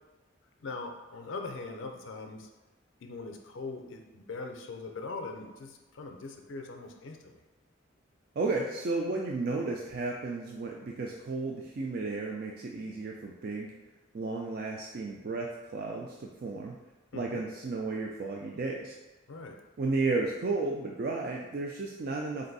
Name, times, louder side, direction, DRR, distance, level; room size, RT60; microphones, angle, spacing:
voice 1, 0.6-2.5 3.0-7.4 17.1-17.4 19.3-19.6, left 3 dB, 80° left, 3 dB, 0.5 m, -41 dB
voice 2, 8.4-13.7 14.1-16.8 17.1-19.0 19.8-22.5, right 3 dB, 50° right, 0 dB, 0.3 m, -33 dB
4.1 x 2.6 x 3.9 m, 1.1 s
head